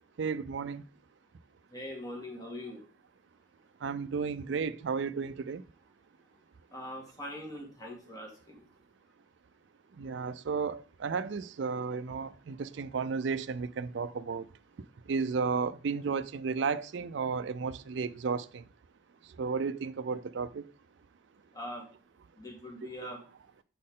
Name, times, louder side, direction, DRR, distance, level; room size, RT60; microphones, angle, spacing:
voice 1, 0.2-0.9 3.8-5.6 9.9-14.5 15.1-18.7 19.2-20.7, right 5 dB, 65° right, 0.4 m, -33 dB
voice 2, 1.7-2.8 6.7-8.7 21.5-21.8 22.3-23.2, left 1 dB, 20° left, 1.7 m, -42 dB
7.4 x 4.2 x 3.6 m
head